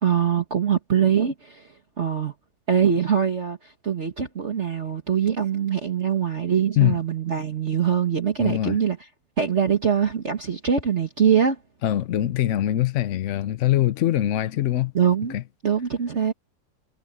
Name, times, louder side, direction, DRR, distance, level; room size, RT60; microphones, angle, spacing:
voice 1, 0.0-1.7 2.0-2.3 2.7-9.0 9.4-11.6 14.9-15.4 15.6-16.3, right 7 dB, 40° right, 1.7 m, -23 dB
voice 2, 8.4-8.8 11.8-14.9 15.3-15.4, left 13 dB, 70° left, 0.7 m, -23 dB
omnidirectional pair, 2.0 m